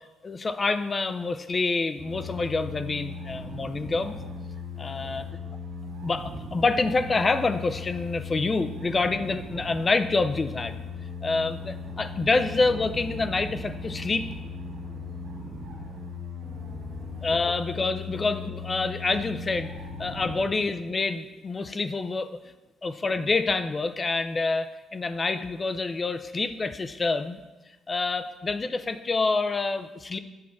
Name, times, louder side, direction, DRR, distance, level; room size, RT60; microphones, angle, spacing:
voice 1, 0.2-4.2 4.8-5.2 6.0-10.8 11.2-14.3 17.2-19.7 20.0-22.4 22.8-27.4 27.9-30.2, left 3 dB, 30° left, 10 dB, 0.4 m, -27 dB
sound 1, 2.0-20.5, left 3 dB, 65° right, 1.7 m, -38 dB
7.2 x 3.5 x 6.2 m, 1.1 s
cardioid pair, 110°, 0 cm